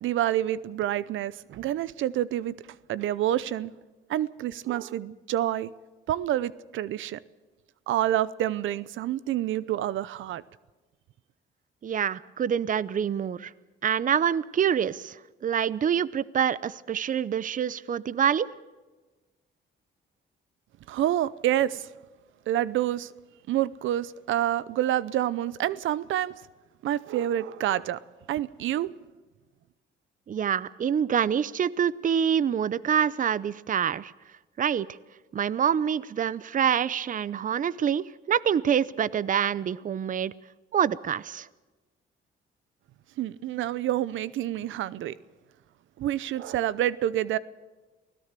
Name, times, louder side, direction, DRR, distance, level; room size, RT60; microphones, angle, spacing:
voice 1, 0.0-2.5 2.9-3.7 4.1-5.7 6.1-7.2 7.9-10.4 20.9-21.9 22.5-23.1 23.5-26.3 26.8-28.0 28.3-28.9 43.2-45.2 46.0-47.4, right 12 dB, 80° right, 0.7 m, -28 dB
voice 2, 11.8-13.5 13.8-18.5 30.3-34.1 34.6-34.9 35.3-40.3 40.7-41.5, right 8 dB, 40° right, 0.7 m, -26 dB
24.0 x 17.0 x 6.8 m
cardioid pair, 90°, 20 cm